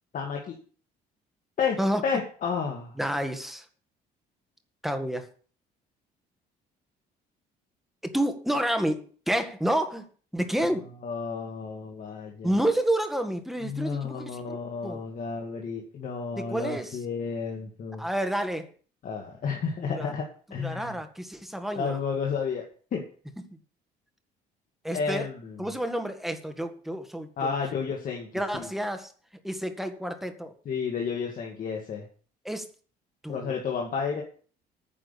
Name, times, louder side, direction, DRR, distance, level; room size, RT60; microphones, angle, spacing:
voice 1, 0.1-0.6 1.6-3.0 10.6-10.8 11.0-12.5 13.6-18.1 19.0-21.0 21.8-22.6 22.9-23.0 24.9-25.6 27.4-28.7 30.7-32.1 33.3-34.2, left 5 dB, 50° left, 1 dB, 2.2 m, -31 dB
voice 2, 3.0-3.7 4.8-5.3 8.0-10.0 10.3-10.9 12.4-15.0 16.4-17.0 18.0-18.7 19.8-20.1 20.6-22.0 24.8-25.3 25.6-27.6 28.3-29.1 29.4-30.5 32.5-32.7 33.2-33.5, right 1 dB, ahead, 6 dB, 1.7 m, -29 dB
9.8 x 6.2 x 8.4 m, 0.42 s
cardioid pair, 110°, 17 cm